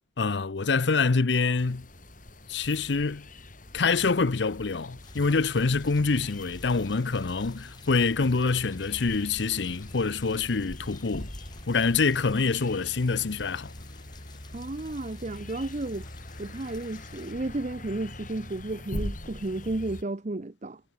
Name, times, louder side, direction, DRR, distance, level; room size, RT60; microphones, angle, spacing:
voice 1, 0.2-1.9 2.5-3.3 3.7-11.3 11.7-13.7, left 4 dB, 75° left, 0.7 m, -26 dB
sound 1, 1.6-20.0, left 1 dB, 50° left, 6.2 m, -42 dB
sound 2, 5.0-17.3, left 6 dB, 25° left, 5.7 m, -55 dB
voice 2, 14.5-16.1 16.4-20.8, right 2 dB, 40° right, 0.8 m, -33 dB
head